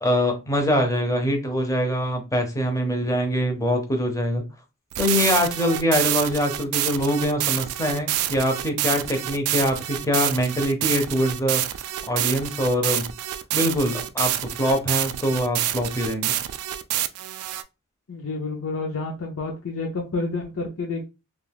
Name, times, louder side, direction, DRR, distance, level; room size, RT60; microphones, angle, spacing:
voice 1, 0.0-4.4 5.0-11.6 12.0-13.1 13.5-16.3, equal, 15° left, 3 dB, 0.6 m, -23 dB
sound 1, 4.9-17.6, right 13 dB, 85° right, 0.3 m, -27 dB
voice 2, 18.1-21.1, left 3 dB, 65° left, -1 dB, 0.6 m, -29 dB
2.4 x 2.3 x 3.3 m, 0.27 s
head